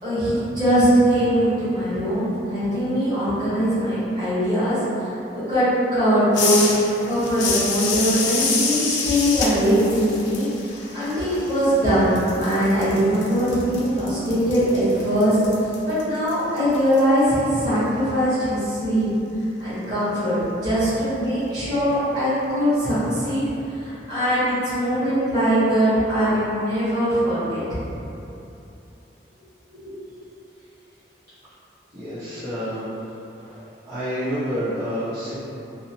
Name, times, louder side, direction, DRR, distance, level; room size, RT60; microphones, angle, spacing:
voice 1, 0.0-6.7 7.0-15.4 15.8-19.0 19.6-20.3 20.6-23.4 23.7-27.6 29.8-29.9 33.5-33.6, equal, 25° right, -15 dB, 1.2 m, -21 dB
sound 1, 6.3-11.9 12.2-17.0, left 4 dB, 75° left, 0.4 m, -27 dB
voice 2, 31.9-32.9 33.3-33.5 33.9-35.4, equal, 55° right, -16 dB, 0.9 m, -28 dB
2.8 x 2.0 x 2.9 m, 2.8 s
head